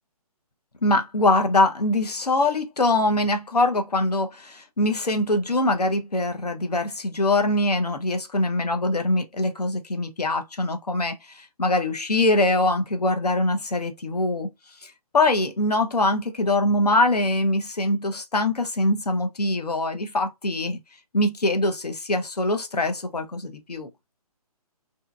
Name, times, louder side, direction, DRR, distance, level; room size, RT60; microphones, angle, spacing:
voice 1, 0.8-14.5 14.8-20.8 21.1-23.9, left 2 dB, 85° left, 0.7 m, -23 dB
2.7 x 2.6 x 2.2 m
figure-of-eight pair, 140°, 20 cm